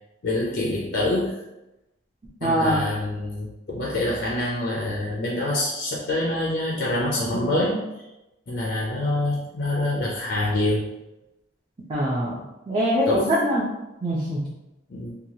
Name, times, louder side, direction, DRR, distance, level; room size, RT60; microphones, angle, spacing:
voice 1, 0.2-1.4 2.4-8.0 8.5-10.9 13.1-13.3 14.9-15.2, left 1 dB, 55° left, -3 dB, 0.4 m, -26 dB
voice 2, 2.4-2.8 11.9-12.3 12.7-13.6 14.0-14.4, equal, 25° right, -6 dB, 0.5 m, -22 dB
2.9 x 2.3 x 2.7 m, 0.95 s
head